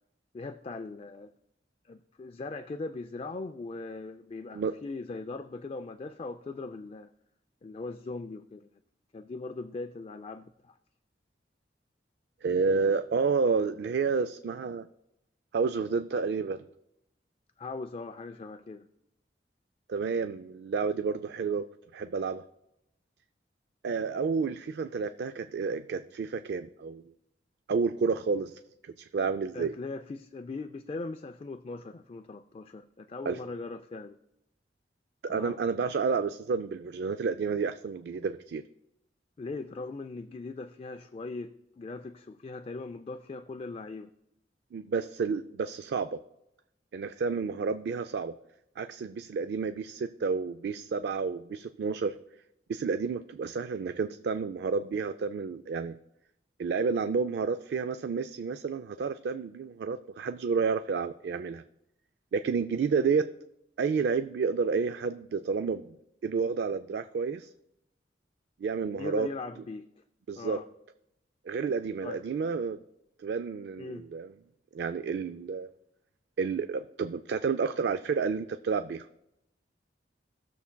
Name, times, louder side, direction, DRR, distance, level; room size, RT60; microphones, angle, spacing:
voice 1, 0.3-1.3 1.8-7.1 7.6-8.7 9.1-10.7 17.6-18.9 29.5-34.2 35.3-35.6 39.4-44.1 69.0-69.9 70.4-70.7 72.0-72.2 73.8-74.1, left 3 dB, 35° left, 8 dB, 0.4 m, -40 dB
voice 2, 12.4-14.9 15.5-16.6 19.9-21.6 21.9-22.4 23.8-27.0 27.7-29.7 33.3-33.4 35.2-38.6 44.7-46.2 46.9-48.3 48.8-52.1 52.7-56.0 56.6-61.6 62.3-63.3 63.8-66.0 66.2-67.5 68.6-69.3 70.3-70.6 71.5-72.8 73.2-74.3 74.7-75.7 76.4-79.1, right 5 dB, 65° right, 10 dB, 0.3 m, -30 dB
16.5 x 6.9 x 2.2 m, 0.83 s
head